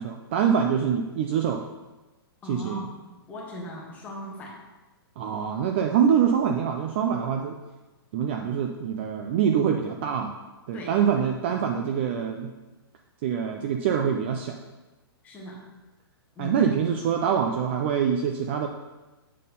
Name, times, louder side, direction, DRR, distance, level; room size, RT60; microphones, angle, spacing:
voice 1, 0.0-1.7 2.4-2.9 5.2-7.6 8.1-10.4 10.7-12.5 13.2-14.6 16.4-18.7, right 8 dB, 25° right, 4 dB, 0.3 m, -25 dB
voice 2, 2.4-4.6 10.7-11.0 15.2-15.6 16.3-16.7, left 1 dB, 10° left, -3 dB, 1.3 m, -38 dB
7.4 x 4.2 x 5.3 m, 1.1 s
hypercardioid pair, 165°, 13 cm